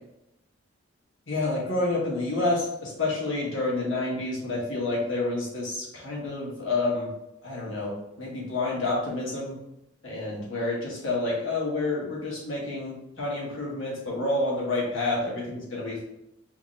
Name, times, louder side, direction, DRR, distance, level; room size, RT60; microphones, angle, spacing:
voice 1, 1.3-7.1 7.4-9.6 10.0-16.0, left 2 dB, 80° left, -4 dB, 1.6 m, -29 dB
5.0 x 3.0 x 3.1 m, 0.88 s
head